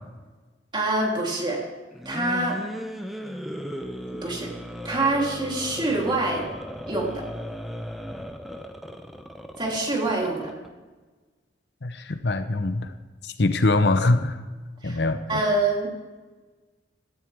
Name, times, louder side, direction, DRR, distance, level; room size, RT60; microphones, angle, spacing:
voice 1, 0.7-1.6 2.1-2.6 4.0-4.5 4.8-6.5 6.9-7.2 9.6-10.5 14.8-15.0 15.3-15.9, right 2 dB, 25° right, -2 dB, 3.4 m, -25 dB
sound 1, 1.9-10.7, equal, ahead, 0.9 m, -36 dB
voice 2, 11.8-12.9 13.2-14.4 14.8-15.4, left 2 dB, 70° left, 10 dB, 0.8 m, -23 dB
16.5 x 12.5 x 3.6 m, 1.3 s
head